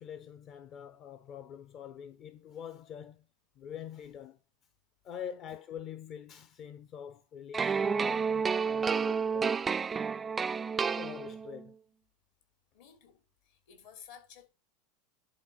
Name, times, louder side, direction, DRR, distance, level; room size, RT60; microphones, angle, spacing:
voice 1, 0.0-3.3 3.6-4.4 5.0-9.7 11.0-11.8, left 9 dB, 45° left, 0.9 m, -45 dB
sound 1, 7.5-11.6, right 6 dB, 25° right, 0.4 m, -30 dB
voice 2, 12.7-14.5, left 8 dB, 70° left, 3.3 m, -54 dB
11.0 x 3.7 x 5.7 m
hypercardioid pair, 90°, 0 cm